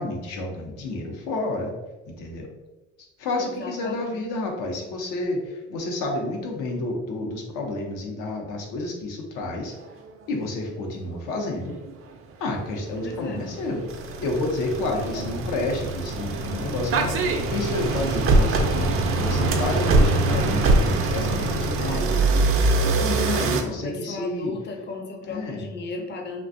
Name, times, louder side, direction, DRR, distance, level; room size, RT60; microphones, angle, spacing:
voice 1, 0.0-2.5 3.2-9.7 10.3-11.7 12.4-13.8 14.2-18.9 19.2-24.5 25.3-25.6, left 2 dB, 75° left, 1 dB, 0.6 m, -30 dB
voice 2, 3.4-4.2 13.0-13.4 14.9-15.3 21.8-22.2 23.6-26.4, left 3 dB, 35° left, 2 dB, 0.5 m, -35 dB
sound 1, 11.9-12.1 12.7-23.6, right 3 dB, 45° right, 0.4 m, -23 dB
2.5 x 2.2 x 2.5 m, 1.1 s
supercardioid pair, 65°, 32 cm